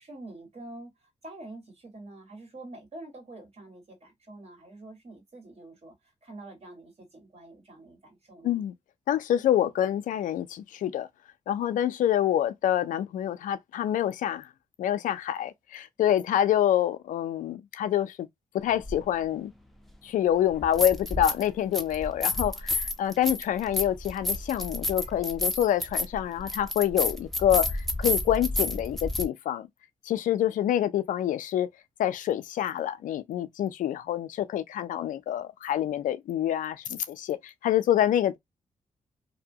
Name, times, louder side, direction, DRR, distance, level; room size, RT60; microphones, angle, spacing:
voice 1, 0.0-8.7, right 2 dB, 50° right, 1.7 m, -46 dB
voice 2, 9.1-11.1 11.5-14.5 14.8-18.3 18.5-19.5 20.0-29.7 30.1-31.7 32.0-38.4, left 11 dB, 85° left, 0.4 m, -27 dB
sound 1, 18.8-19.0 20.5-21.5 21.7-29.2, left 2 dB, ahead, 0.6 m, -30 dB
2.7 x 2.2 x 2.7 m
cardioid pair, 60°, 13 cm